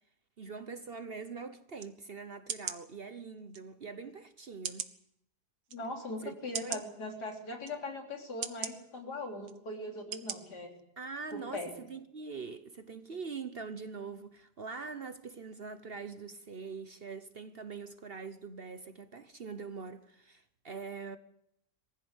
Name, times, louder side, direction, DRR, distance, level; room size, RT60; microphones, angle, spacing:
voice 1, 0.4-4.9 6.2-6.4 6.6-6.8 11.0-21.2, right 5 dB, 45° right, 1.0 m, -43 dB
sound 1, 1.8-1.9 2.5-2.8 3.5-3.6 4.6-5.0 5.7-5.8 6.5-6.8 7.6-7.8 8.4-8.7 9.4-9.6 10.1-10.4 10.8-10.9, right 8 dB, 70° right, 1.6 m, -38 dB
voice 2, 5.7-10.7 11.3-11.7, left 2 dB, 85° left, 4.4 m, -40 dB
23.0 x 15.5 x 8.0 m
omnidirectional pair, 1.7 m